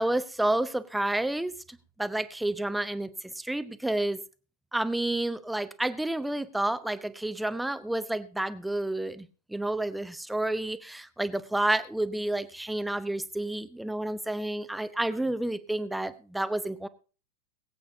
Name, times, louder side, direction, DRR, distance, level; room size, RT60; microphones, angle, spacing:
voice 1, 0.0-1.6 2.0-3.1 3.4-4.2 4.7-16.9, right 1 dB, 5° right, 0.9 m, -30 dB
22.0 x 8.7 x 2.7 m
figure-of-eight pair, 90°, 0 cm